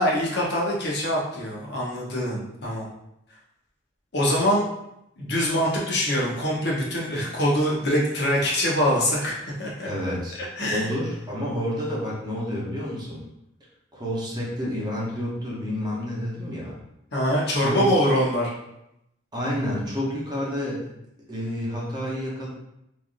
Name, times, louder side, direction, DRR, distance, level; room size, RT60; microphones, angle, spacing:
voice 1, 0.0-2.9 4.1-4.7 5.2-9.9 10.6-10.8 17.1-18.5, equal, 60° left, -4 dB, 0.8 m, -24 dB
voice 2, 9.8-10.4 10.7-13.2 13.9-16.8 17.5-17.9 19.3-20.9 21.3-22.5, equal, 20° right, -5 dB, 0.7 m, -29 dB
3.2 x 2.5 x 2.4 m, 0.81 s
head